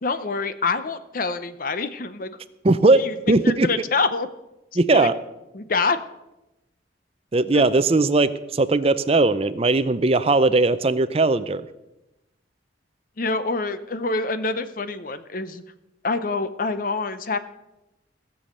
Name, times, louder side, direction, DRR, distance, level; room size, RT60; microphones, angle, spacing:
voice 1, 0.0-2.4 3.0-3.1 3.4-4.3 4.9-5.1 5.5-6.0 7.5-7.6 13.2-15.6 16.0-17.4, left 4 dB, 45° left, 12 dB, 0.7 m, -26 dB
voice 2, 2.6-3.0 3.3-3.7 4.8-5.1 7.3-11.6, right 2 dB, 30° right, 13 dB, 0.5 m, -19 dB
16.5 x 7.1 x 6.6 m, 0.96 s
head